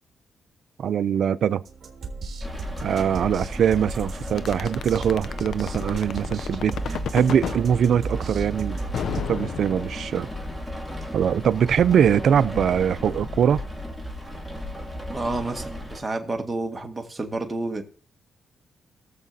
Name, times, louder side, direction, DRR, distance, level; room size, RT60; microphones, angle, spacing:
voice 1, 0.8-1.6 2.8-8.8 9.3-10.3 11.1-13.6, right 8 dB, 70° right, 0.5 m, -22 dB
sound 1, 1.6-9.2, right 4 dB, 55° right, 1.9 m, -36 dB
Rain, 2.4-16.0, left 1 dB, 10° left, 2.6 m, -35 dB
sound 2, 4.4-7.6 8.9-10.3, left 8 dB, 75° left, 0.5 m, -31 dB
voice 2, 15.1-17.8, right 2 dB, 20° right, 1.9 m, -30 dB
22.0 x 7.4 x 2.7 m
cardioid pair, 80°, 0 cm